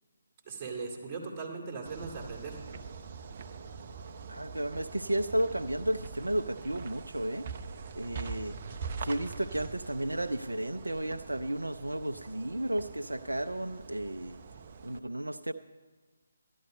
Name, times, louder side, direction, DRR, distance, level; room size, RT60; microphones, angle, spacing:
voice 1, 0.4-2.6, right 4 dB, 20° right, -2 dB, 2.5 m, -39 dB
sound 1, 1.8-15.0, right 5 dB, 40° right, 0.8 m, -44 dB
voice 2, 4.3-7.5 7.9-8.6 9.0-14.4 14.8-15.5, right 1 dB, 80° right, 11 dB, 0.5 m, -33 dB
12.5 x 11.5 x 5.4 m, 1.4 s
figure-of-eight pair, 145°, 0 cm